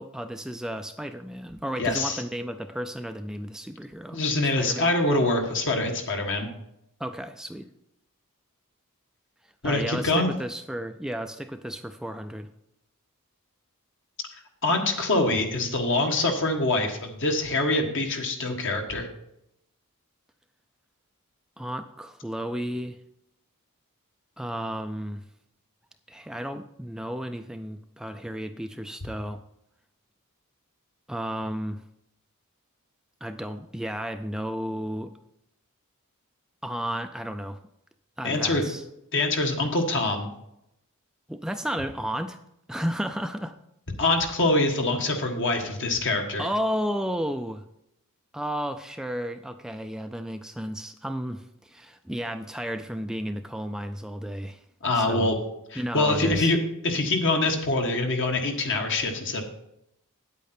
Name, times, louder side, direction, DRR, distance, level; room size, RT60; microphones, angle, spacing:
voice 1, 0.0-4.2 4.6-4.9 7.0-7.7 9.6-12.5 21.6-23.0 24.4-25.2 26.1-29.4 31.1-31.8 33.2-35.1 36.6-37.6 38.2-38.8 41.3-42.4 42.7-43.5 46.4-47.6 48.3-54.6 54.9-55.3 55.8-56.5, equal, 5° right, 8 dB, 0.3 m, -33 dB
voice 2, 1.8-2.2 4.1-6.5 9.6-10.3 14.6-19.1 38.2-38.6 39.1-40.3 44.0-46.5 54.8-55.3 55.7-56.6 56.8-59.4, left 2 dB, 60° left, 3 dB, 1.5 m, -24 dB
9.0 x 8.4 x 4.3 m, 0.81 s
head